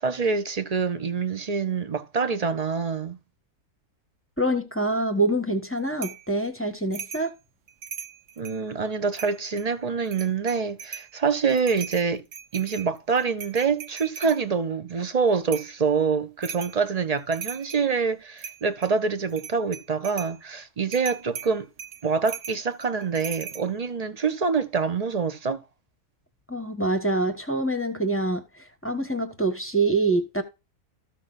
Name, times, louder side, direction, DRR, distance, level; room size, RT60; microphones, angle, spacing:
voice 1, 0.0-3.2 8.4-12.2 12.5-21.7 22.0-25.6, right 5 dB, 35° right, 0.8 m, -26 dB
voice 2, 4.4-7.3 26.5-28.4 28.8-30.4, right 2 dB, 10° left, 1.1 m, -25 dB
sound 1, 6.0-6.3 6.9-7.3 7.7-8.6 9.1-9.7 10.1-11.1 11.5-14.4 15.5-15.8 16.4-16.8 17.2-17.9 18.4-18.9 19.3-20.4 20.9-23.7, right 7 dB, 65° right, 1.2 m, -39 dB
14.0 x 6.0 x 2.5 m
omnidirectional pair, 1.4 m